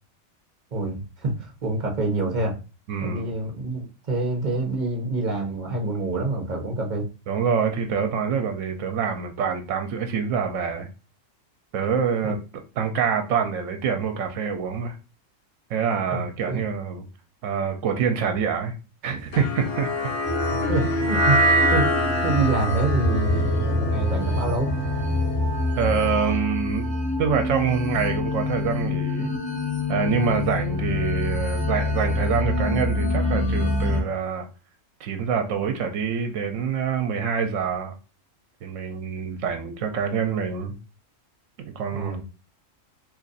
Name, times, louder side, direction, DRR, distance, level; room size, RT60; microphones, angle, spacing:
voice 1, 0.7-2.6 3.0-7.1 12.2-12.3 16.1-16.6 20.7-21.4 21.7-21.9 22.2-24.7 41.9-42.2, right 2 dB, 40° right, 0.9 m, -26 dB
voice 2, 2.9-3.2 7.3-10.9 11.7-12.4 12.8-14.9 15.7-17.0 17.4-18.7 19.0-20.1 25.8-26.9 27.2-29.3 29.9-34.5 35.0-37.9 38.6-40.7 41.6-42.2, right 6 dB, 75° right, 1.0 m, -26 dB
sound 1, 19.3-25.7, equal, 55° left, 0.9 m, -25 dB
sound 2, 20.2-34.0, left 1 dB, 10° left, 0.4 m, -26 dB
2.9 x 2.5 x 3.9 m
omnidirectional pair, 1.4 m